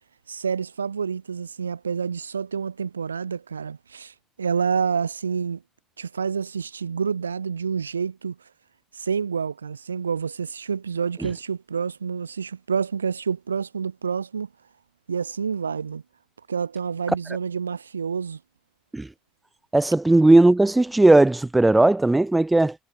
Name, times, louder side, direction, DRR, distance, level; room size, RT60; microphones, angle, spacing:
voice 1, 0.3-5.6 6.0-8.4 8.9-14.5 15.1-16.0 16.5-18.4, right 6 dB, 80° right, 2.1 m, -28 dB
voice 2, 19.7-22.7, right 2 dB, 10° right, 0.6 m, -17 dB
figure-of-eight pair, 60°, 0 cm